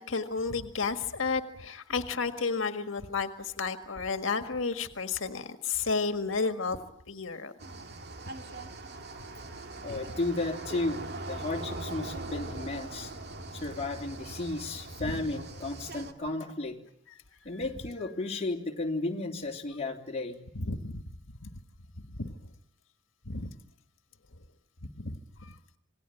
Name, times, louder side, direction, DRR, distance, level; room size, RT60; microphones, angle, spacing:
voice 1, 0.1-6.8 7.1-7.5 15.0-15.2 20.5-21.0 21.4-21.5 22.2-22.3 23.2-23.5 25.0-25.5, left 4 dB, 90° left, 8 dB, 1.7 m, -32 dB
sound 1, 7.6-16.1, right 2 dB, 60° right, 2.1 m, -41 dB
voice 2, 9.8-13.2 13.5-16.8 17.4-20.4, left 2 dB, 35° left, 2 dB, 3.1 m, -34 dB
27.5 x 19.5 x 9.1 m, 0.73 s
head